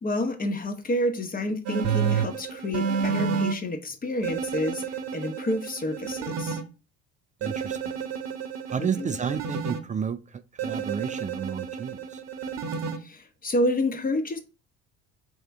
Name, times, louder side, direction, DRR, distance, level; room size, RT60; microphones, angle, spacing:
voice 1, 0.0-4.8 5.1-6.6 8.8-9.1 13.0-14.4, left 1 dB, 25° left, 1.0 m, -29 dB
sound 1, 1.7-3.5 4.2-6.6 7.4-9.8 10.6-13.0, right 6 dB, 55° right, 0.9 m, -30 dB
voice 2, 7.4-7.9 8.7-12.2, right 7 dB, 25° right, 0.4 m, -31 dB
3.6 x 3.4 x 3.5 m
hypercardioid pair, 70°, 31 cm